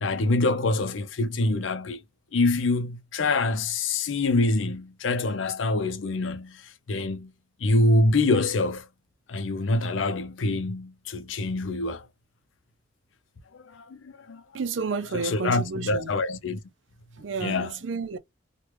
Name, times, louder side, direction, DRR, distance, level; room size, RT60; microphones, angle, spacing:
voice 1, 0.0-2.0 2.3-6.6 6.9-7.3 7.6-8.9 9.3-12.0 13.7-14.4 15.2-16.6 17.4-17.7, left 2 dB, 80° left, 0.5 m, -25 dB
voice 2, 14.5-16.1 17.2-18.2, right 5 dB, 75° right, 0.5 m, -31 dB
3.0 x 2.3 x 3.2 m
head